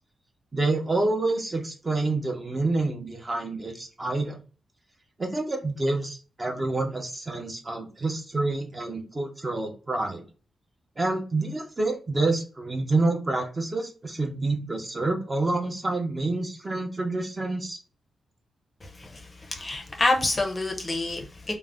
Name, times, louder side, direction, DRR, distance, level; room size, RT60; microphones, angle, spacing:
voice 1, 0.5-4.4 5.2-10.2 11.0-17.8, right 2 dB, 25° right, 0.6 m, -28 dB
voice 2, 18.8-21.6, left 2 dB, 25° left, 0.5 m, -28 dB
2.4 x 2.0 x 3.3 m
wide cardioid pair, 110°, 0 cm